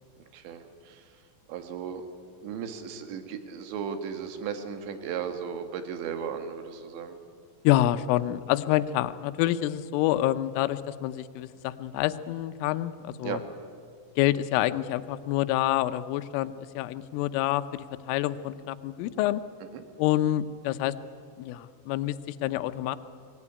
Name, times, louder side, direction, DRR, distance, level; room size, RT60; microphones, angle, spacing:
voice 1, 0.3-1.1 1.5-2.1 2.4-7.2 13.2-13.4 19.7-19.8, right 7 dB, 70° right, 7 dB, 3.8 m, -36 dB
voice 2, 7.6-13.4 14.2-19.4 20.0-20.9 21.4-23.0, left 14 dB, 85° left, 11 dB, 3.3 m, -27 dB
24.5 x 18.5 x 9.8 m, 2.1 s
omnidirectional pair, 5.7 m